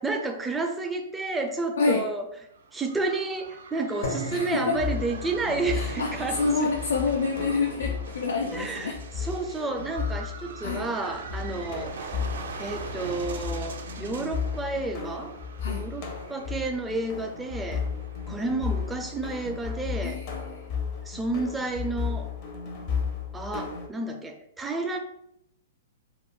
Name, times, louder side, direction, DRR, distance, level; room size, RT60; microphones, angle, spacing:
voice 1, 0.0-2.3 2.7-6.7 7.9-8.0 8.5-12.2 12.6-15.3 15.7-17.8 18.3-20.2 21.1-22.3 23.3-25.0, right 3 dB, 10° right, 4 dB, 0.4 m, -31 dB
voice 2, 1.8-2.1 4.3-4.8 5.7-9.0 10.6-10.9 15.6-15.9 20.0-20.7, left 4 dB, 85° left, 1 dB, 0.3 m, -28 dB
sound 1, 2.4-20.1, right 4 dB, 75° right, 0.4 m, -42 dB
sound 2, 4.0-12.1, left 1 dB, 70° left, 1.0 m, -42 dB
sound 3, 4.7-23.9, left 6 dB, 45° left, 0.6 m, -34 dB
2.3 x 2.0 x 3.5 m, 0.75 s
hypercardioid pair, 125°, 0 cm